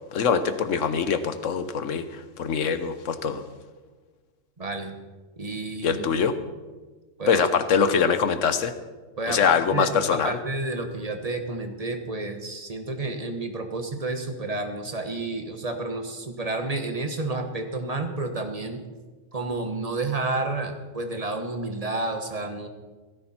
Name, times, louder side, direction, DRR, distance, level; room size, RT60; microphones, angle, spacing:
voice 1, 0.1-3.4 5.8-6.4 7.3-8.7 9.3-10.4, left 6 dB, 75° left, 11 dB, 1.2 m, -23 dB
voice 2, 4.6-4.9 5.4-6.1 7.2-7.5 9.2-18.8 19.3-22.7, right 2 dB, 30° right, 6 dB, 1.4 m, -30 dB
17.0 x 15.0 x 4.4 m, 1.3 s
omnidirectional pair, 1.3 m